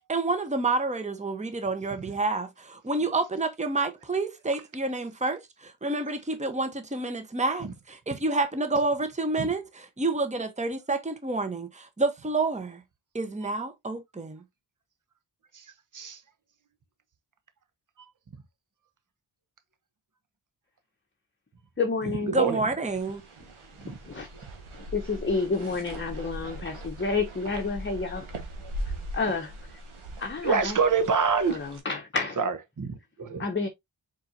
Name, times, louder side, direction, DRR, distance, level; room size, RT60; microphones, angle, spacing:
voice 1, 0.1-12.8 13.1-14.4 22.3-23.2, right 3 dB, 15° right, 1.0 m, -29 dB
voice 2, 21.8-22.3 24.1-24.3 24.9-28.3 29.1-29.5 30.2-30.8 31.5-32.4 33.4-33.7, left 4 dB, 25° left, 0.9 m, -29 dB
voice 3, 22.3-22.6 23.8-24.0 30.4-31.6 32.4-33.4, right 5 dB, 40° right, 1.0 m, -26 dB
sound 1, 22.9-31.8, right 1 dB, 80° right, 1.5 m, -40 dB
4.5 x 4.3 x 2.7 m
cardioid pair, 45°, 49 cm